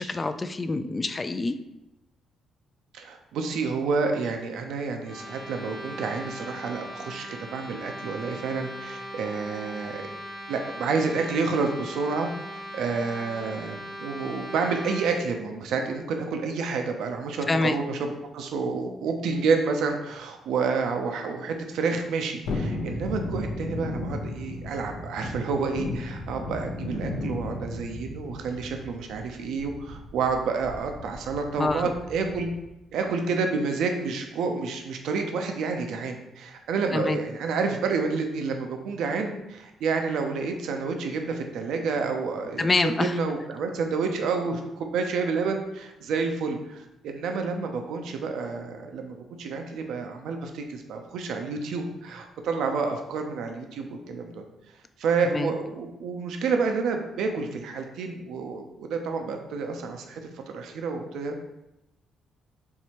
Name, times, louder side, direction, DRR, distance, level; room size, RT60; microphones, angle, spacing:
voice 1, 0.0-1.5 17.5-17.8 31.6-31.9 36.9-37.2 42.6-43.1 55.3-55.5, left 3 dB, 25° left, 10 dB, 0.3 m, -26 dB
voice 2, 2.9-10.1 10.5-32.5 32.9-42.7 43.0-54.4 55.0-61.4, right 4 dB, 80° right, 4 dB, 0.5 m, -29 dB
sound 1, 5.0-15.2, equal, 10° left, 0.8 m, -39 dB
Thunderstorm, 22.5-32.7 33.0-33.1, left 2 dB, 80° left, 0.6 m, -35 dB
4.6 x 3.2 x 2.9 m, 0.92 s
cardioid pair, 90°, 0 cm